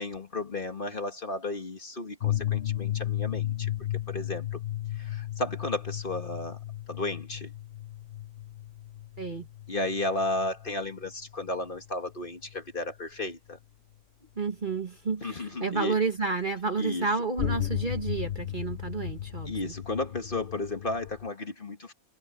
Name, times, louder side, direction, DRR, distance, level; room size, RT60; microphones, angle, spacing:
voice 1, 0.0-3.7 4.1-4.6 5.0-6.6 6.9-7.5 9.7-13.6 15.2-16.0 16.8-17.1 19.5-21.9, left 2 dB, 35° left, 2.1 m, -33 dB
sound 1, 2.2-11.5 12.5-12.6 17.4-21.3, left 12 dB, 55° left, 0.8 m, -34 dB
voice 2, 9.2-9.5 14.3-19.7, right 4 dB, 35° right, 1.5 m, -30 dB
omnidirectional pair, 1.5 m